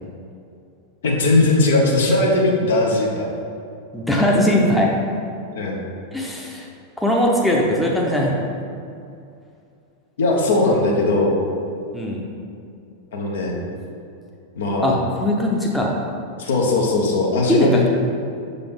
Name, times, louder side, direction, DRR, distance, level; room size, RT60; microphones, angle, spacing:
voice 1, 1.0-3.3 5.5-5.8 10.2-11.4 13.1-13.6 14.6-15.0 16.4-17.9, left 2 dB, 65° left, -1 dB, 0.9 m, -19 dB
voice 2, 3.9-4.9 6.1-6.7 7.0-8.4 11.9-12.2 14.8-15.9 17.5-17.8, left 1 dB, 5° left, -3 dB, 0.8 m, -20 dB
6.6 x 3.9 x 3.6 m, 2.5 s
figure-of-eight pair, 90°, 0 cm